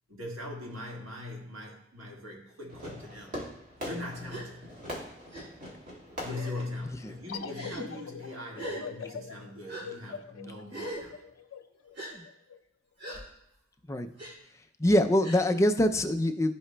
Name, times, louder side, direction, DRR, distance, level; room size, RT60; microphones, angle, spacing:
voice 1, 0.1-3.4 3.8-4.7 6.2-11.2, left 2 dB, 80° right, -1 dB, 1.6 m, -41 dB
Fireworks, 2.7-7.7, equal, 40° right, 2.0 m, -42 dB
Gasp, 4.3-4.5 5.3-5.4 6.3-6.7 7.5-7.8 8.5-8.8 9.7-9.8 10.7-11.0 11.9-12.1 13.0-13.2 14.2-14.3 15.2-15.4, right 1 dB, 55° right, 3.1 m, -39 dB
sound 1, 7.3-12.6, left 7 dB, 80° left, 0.4 m, -42 dB
voice 2, 14.8-16.5, left 1 dB, 15° left, 6 dB, 0.4 m, -24 dB
14.0 x 4.8 x 2.2 m, 0.81 s
head